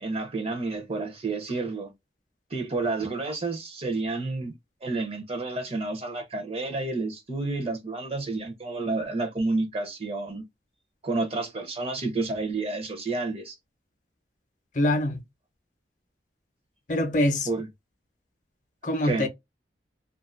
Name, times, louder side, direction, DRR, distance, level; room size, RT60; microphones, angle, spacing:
voice 1, 0.0-1.9 2.5-4.5 4.8-10.4 11.0-13.6 17.5-17.7 19.0-19.3, right 3 dB, 35° right, 0.6 m, -30 dB
voice 2, 14.7-15.2 16.9-17.5 18.8-19.3, left 1 dB, 45° left, 0.6 m, -24 dB
2.5 x 2.3 x 2.4 m
head